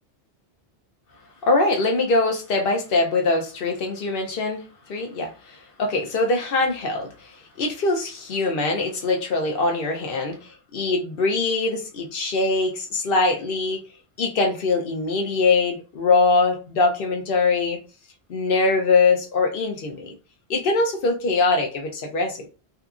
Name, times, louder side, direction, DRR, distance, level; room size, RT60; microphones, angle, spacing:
voice 1, 1.4-13.8 14.2-17.8 18.3-20.1 20.5-22.5, left 3 dB, 65° left, 0.8 m, -22 dB
2.7 x 2.4 x 2.3 m
omnidirectional pair, 1.1 m